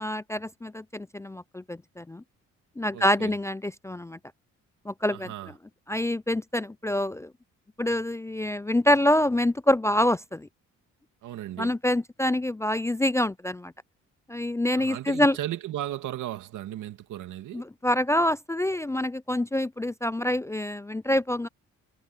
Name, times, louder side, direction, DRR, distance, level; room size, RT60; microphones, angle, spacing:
voice 1, 0.0-2.2 2.8-4.2 4.9-5.3 5.9-7.3 7.8-10.5 11.6-13.7 14.3-15.4 17.5-21.5, left 1 dB, 10° left, 0.4 m, -26 dB
voice 2, 2.9-3.3 5.1-5.5 11.2-11.7 14.7-17.6, right 13 dB, 80° right, 2.4 m, -36 dB
cardioid pair, 90°, 30 cm